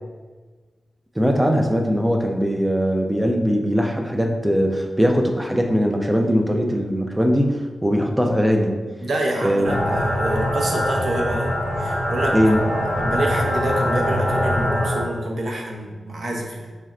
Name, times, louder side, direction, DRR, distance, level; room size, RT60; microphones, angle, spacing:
voice 1, 1.2-8.8 9.4-9.7 12.3-12.6, equal, 5° right, 2 dB, 0.3 m, -20 dB
voice 2, 9.0-12.4 13.0-16.7, right 1 dB, 55° right, 0 dB, 0.6 m, -27 dB
sound 1, 9.6-15.0, equal, 35° right, 1.5 m, -23 dB
3.2 x 2.5 x 4.1 m, 1.4 s
wide cardioid pair, 155°, 0 cm